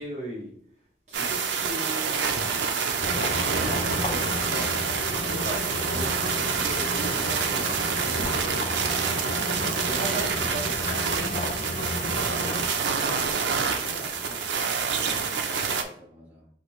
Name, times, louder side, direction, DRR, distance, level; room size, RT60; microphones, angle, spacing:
voice 1, 0.0-2.7 3.3-4.7 5.2-8.8 9.8-11.7 12.1-14.6, right 1 dB, 40° right, -5 dB, 0.8 m, -39 dB
sound 1, 1.1-15.8, right 6 dB, 85° right, 0.5 m, -27 dB
sound 2, 3.0-12.7, left 2 dB, 35° left, 0.5 m, -33 dB
voice 2, 3.5-4.0 14.9-16.5, left 2 dB, 10° right, -7 dB, 1.4 m, -46 dB
5.0 x 2.6 x 3.1 m, 0.65 s
head